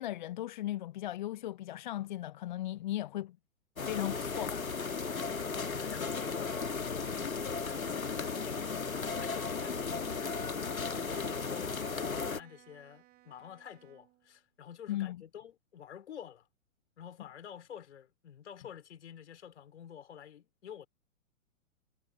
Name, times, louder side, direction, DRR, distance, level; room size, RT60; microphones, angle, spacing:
voice 1, 0.0-3.4 3.9-4.6 14.9-15.2, left 14 dB, 35° left, 0.7 m, -37 dB
sound 1, 3.8-12.4, left 5 dB, 75° left, 1.8 m, -35 dB
voice 2, 5.5-16.5 17.0-20.9, left 9 dB, 55° left, 4.7 m, -50 dB
Bowed string instrument, 9.1-14.4, right 15 dB, 20° right, 2.3 m, -61 dB
figure-of-eight pair, 115°, 41 cm